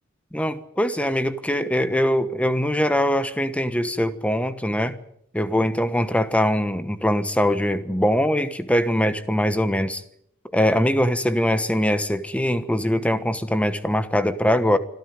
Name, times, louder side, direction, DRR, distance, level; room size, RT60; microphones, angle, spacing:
voice 1, 0.3-5.0 5.3-10.0 10.5-14.8, equal, 5° left, 12 dB, 1.1 m, -22 dB
25.5 x 13.5 x 9.5 m, 0.74 s
head